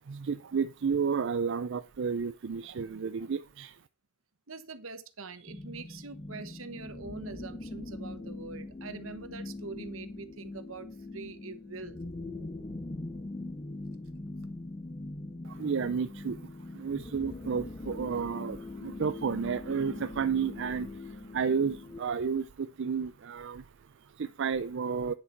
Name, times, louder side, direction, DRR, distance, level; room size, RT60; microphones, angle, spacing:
voice 1, 0.1-3.8 15.4-25.1, right 6 dB, 65° right, 0.5 m, -32 dB
voice 2, 4.5-12.0, right 3 dB, 85° right, 1.2 m, -44 dB
sound 1, 5.5-22.0, left 2 dB, 25° left, 0.6 m, -42 dB
9.7 x 7.0 x 4.5 m
head